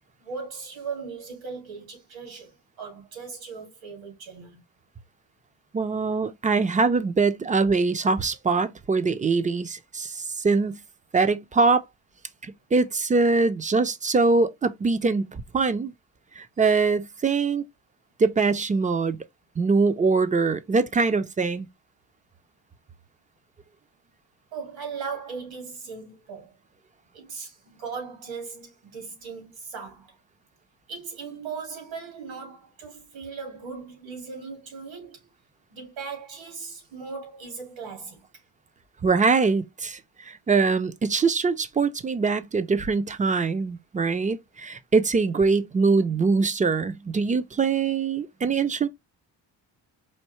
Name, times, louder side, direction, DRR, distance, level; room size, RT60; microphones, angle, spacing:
voice 1, 0.2-4.6 24.5-26.6 27.1-30.2 30.9-35.3 35.7-38.3, right 5 dB, 80° right, 2.4 m, -38 dB
voice 2, 5.7-10.8 11.1-11.8 12.4-15.9 16.4-17.6 18.2-19.2 19.6-21.7 39.0-48.9, right 4 dB, 20° right, 0.3 m, -23 dB
4.4 x 2.7 x 3.0 m
cardioid pair, 105°, 45 cm